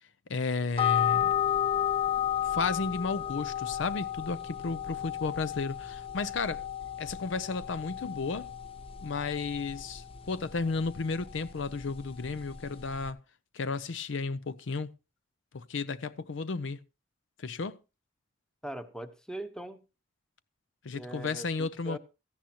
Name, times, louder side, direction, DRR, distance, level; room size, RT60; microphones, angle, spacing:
voice 1, 0.3-1.3 2.5-6.6 7.0-8.5 9.0-13.2 13.5-14.9 15.5-16.8 17.4-17.8 20.8-22.0, left 4 dB, 70° left, 0.6 m, -33 dB
sound 1, 0.7-13.1, left 10 dB, 30° left, 0.7 m, -33 dB
voice 2, 18.6-19.8 20.9-22.0, right 1 dB, 5° left, 1.0 m, -41 dB
16.5 x 14.0 x 2.9 m
head